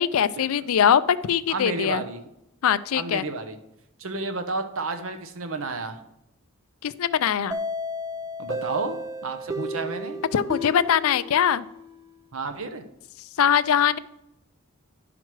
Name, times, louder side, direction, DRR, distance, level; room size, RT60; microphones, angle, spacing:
voice 1, 0.0-2.0 2.6-3.2 6.8-7.6 10.3-11.6 13.4-14.0, left 8 dB, 70° left, 14 dB, 0.4 m, -22 dB
voice 2, 1.5-2.2 2.9-3.6 4.0-6.0 8.4-10.2 12.3-12.8, right 3 dB, 65° right, 8 dB, 0.8 m, -31 dB
sound 1, 7.5-12.2, left 1 dB, 15° right, 0.5 m, -33 dB
10.5 x 5.9 x 4.6 m, 0.84 s
head